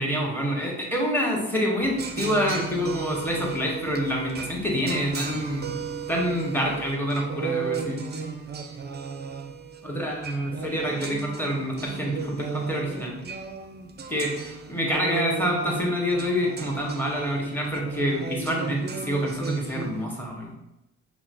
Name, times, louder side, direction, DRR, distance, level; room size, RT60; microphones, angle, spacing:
voice 1, 0.0-5.7 6.1-8.0 9.8-13.2 14.1-20.5, equal, 5° left, -2 dB, 1.3 m, -27 dB
sound 1, 1.8-20.1, right 5 dB, 30° right, 0.5 m, -35 dB
5.7 x 2.2 x 2.5 m, 0.92 s
hypercardioid pair, 40°, 36 cm